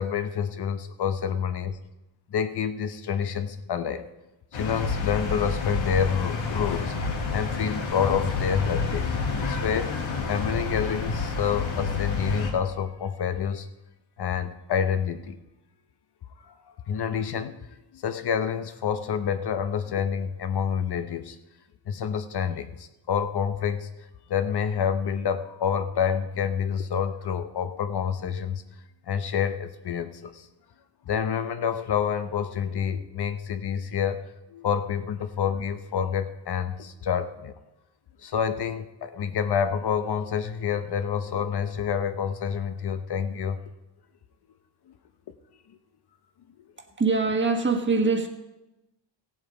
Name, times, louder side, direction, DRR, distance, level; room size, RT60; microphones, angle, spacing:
voice 1, 0.0-1.8 2.3-4.0 4.5-6.9 7.3-9.9 10.3-13.7 14.2-15.4 16.4-16.5 16.9-17.6 17.9-21.4 21.9-23.9 24.3-28.6 29.1-30.5 31.1-34.2 34.5-37.5 38.2-43.6, left 7 dB, 55° left, 9 dB, 0.8 m, -28 dB
sound 1, 4.5-12.5, left 4 dB, 80° left, 2.2 m, -29 dB
voice 2, 47.0-48.3, right 4 dB, 25° right, 3 dB, 1.4 m, -23 dB
16.5 x 8.1 x 4.9 m, 0.98 s
wide cardioid pair, 140°, 46 cm